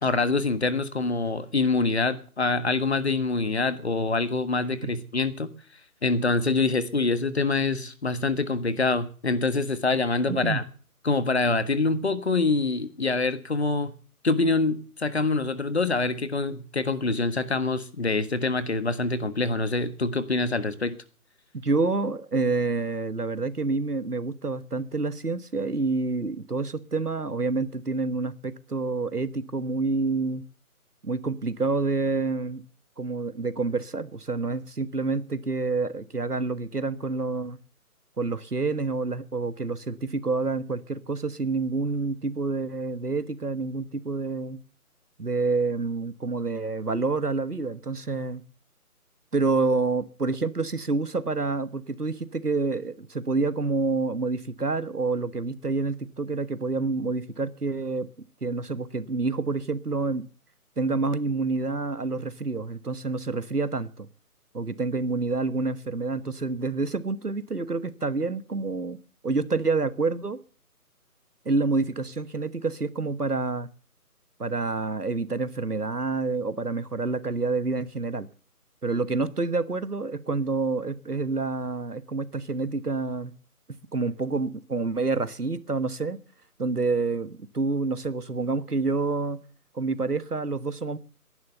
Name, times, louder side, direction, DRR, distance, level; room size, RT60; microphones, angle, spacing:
voice 1, 0.0-5.5 6.0-10.6 11.0-13.9 14.2-20.9, left 3 dB, 45° left, 1.6 m, -25 dB
voice 2, 10.3-10.6 21.5-30.4 31.0-32.6 33.0-37.6 38.2-44.6 45.2-48.4 49.3-58.1 58.4-60.2 60.8-64.1 64.5-69.0 69.2-70.4 71.4-73.7 74.4-78.3 78.8-83.3 83.7-86.2 86.6-89.4 89.7-91.0, right 3 dB, 85° right, 1.5 m, -28 dB
18.0 x 11.0 x 6.9 m
figure-of-eight pair, 155°, 45 cm